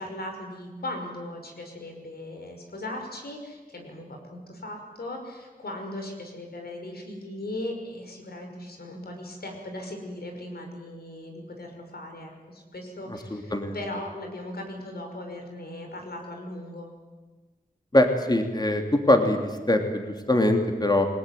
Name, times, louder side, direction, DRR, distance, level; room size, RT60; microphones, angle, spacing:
voice 1, 0.0-16.9, left 1 dB, 90° left, 3 dB, 5.9 m, -38 dB
voice 2, 13.3-13.7 17.9-21.1, left 1 dB, 25° left, 4 dB, 3.1 m, -22 dB
29.0 x 20.5 x 9.4 m, 1.3 s
wide cardioid pair, 70°, 16 cm